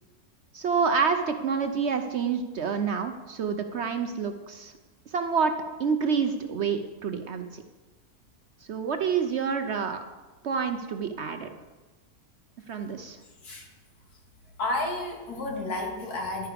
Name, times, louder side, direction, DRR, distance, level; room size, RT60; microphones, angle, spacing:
voice 1, 0.5-4.7 5.1-7.6 8.7-10.0 10.4-11.5 12.7-13.2, right 6 dB, 60° right, 7 dB, 0.8 m, -28 dB
voice 2, 14.6-16.5, left 2 dB, 80° left, 2 dB, 2.3 m, -31 dB
11.5 x 9.4 x 5.1 m, 1.2 s
omnidirectional pair, 1.6 m